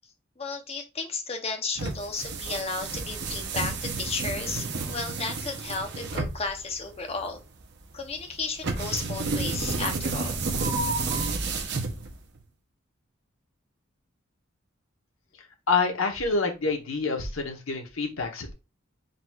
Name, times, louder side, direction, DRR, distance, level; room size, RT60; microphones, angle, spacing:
voice 1, 0.4-7.4 7.9-10.4, left 4 dB, 30° left, 5 dB, 0.8 m, -33 dB
sound 1, 1.8-12.4, right 3 dB, 60° right, 0.7 m, -31 dB
voice 2, 15.7-18.5, left 4 dB, 90° left, 3 dB, 1.0 m, -27 dB
4.3 x 4.0 x 2.3 m, 0.27 s
head